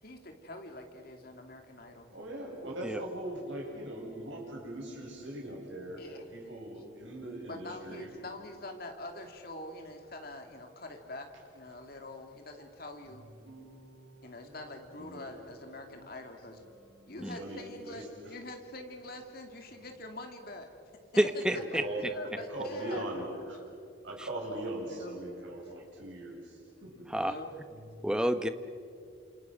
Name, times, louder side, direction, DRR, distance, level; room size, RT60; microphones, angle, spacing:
voice 1, 0.0-2.1 6.0-6.2 7.5-11.3 11.5-13.2 14.2-16.6 17.1-20.7 21.7-23.6 24.9-25.1 27.2-27.5, left 2 dB, 50° left, 4 dB, 2.8 m, -45 dB
voice 2, 2.1-8.1 13.1-16.0 16.7-17.6 17.9-18.4 21.5-22.0 22.3-23.6 24.0-27.3 27.7-28.1, right 1 dB, 75° right, -1 dB, 7.4 m, -41 dB
voice 3, 21.2-21.8 27.1-27.3 28.0-28.5, equal, 5° right, 9 dB, 0.8 m, -28 dB
28.5 x 27.5 x 6.3 m, 2.5 s
head